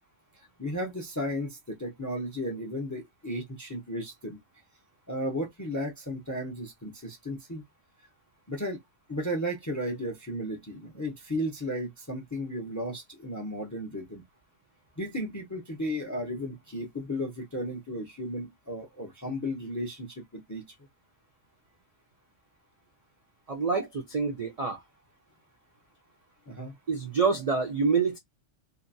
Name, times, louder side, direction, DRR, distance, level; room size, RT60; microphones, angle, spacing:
voice 1, 0.4-4.4 5.1-7.6 8.5-8.8 9.1-14.2 15.0-20.7 26.5-26.7, equal, 25° left, 0.4 m, -34 dB
voice 2, 23.5-24.8 26.9-28.2, right 5 dB, 55° right, 0.4 m, -27 dB
2.7 x 2.2 x 2.6 m
omnidirectional pair, 1.2 m